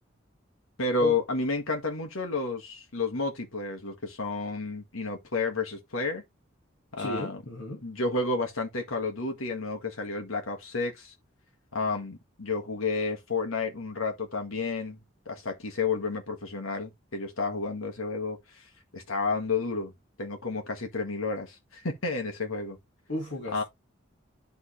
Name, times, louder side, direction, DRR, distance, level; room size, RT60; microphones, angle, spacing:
voice 1, 0.8-6.2 6.9-7.4 7.8-11.1 11.7-15.0 15.3-18.4 18.9-19.9 20.2-22.8 23.5-23.6, left 3 dB, 80° left, 1.7 m, -31 dB
voice 2, 7.0-7.8 23.1-23.6, left 1 dB, 60° left, 2.0 m, -35 dB
11.0 x 3.7 x 3.2 m
head